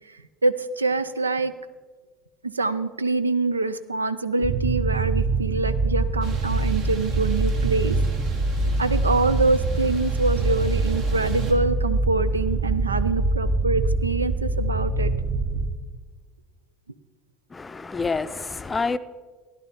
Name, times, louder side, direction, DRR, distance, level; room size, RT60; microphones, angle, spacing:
voice 1, 0.1-1.5 2.4-8.0 8.8-15.1, right 3 dB, 85° right, 0.4 m, -25 dB
sound 1, 4.4-15.7, right 3 dB, 40° right, 1.0 m, -24 dB
sound 2, 6.2-11.5, right 4 dB, 60° right, 1.8 m, -39 dB
voice 2, 17.5-19.0, left 4 dB, 20° left, 0.5 m, -27 dB
14.0 x 11.0 x 3.6 m
figure-of-eight pair, 65°, 0 cm